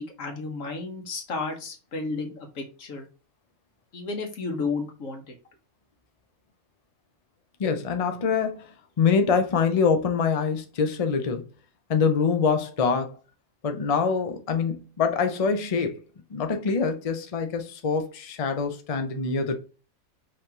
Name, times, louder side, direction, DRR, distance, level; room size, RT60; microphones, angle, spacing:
voice 1, 0.0-3.1 3.9-5.3, left 3 dB, 90° left, 1.6 m, -32 dB
voice 2, 7.6-11.4 11.9-13.1 13.6-16.0 16.3-19.5, left 5 dB, 35° left, 0.6 m, -25 dB
5.4 x 3.3 x 2.9 m
omnidirectional pair, 1.3 m